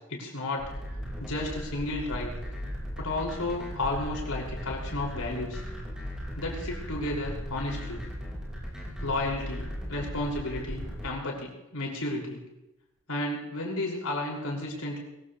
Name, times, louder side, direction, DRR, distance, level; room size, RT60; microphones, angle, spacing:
voice 1, 0.1-0.6 1.2-2.3 3.0-5.6 6.4-8.0 9.0-12.4 13.1-15.0, left 2 dB, 70° left, -2 dB, 5.9 m, -32 dB
sound 1, 0.6-11.1, equal, 5° right, 4.9 m, -37 dB
23.0 x 16.0 x 3.3 m, 0.95 s
head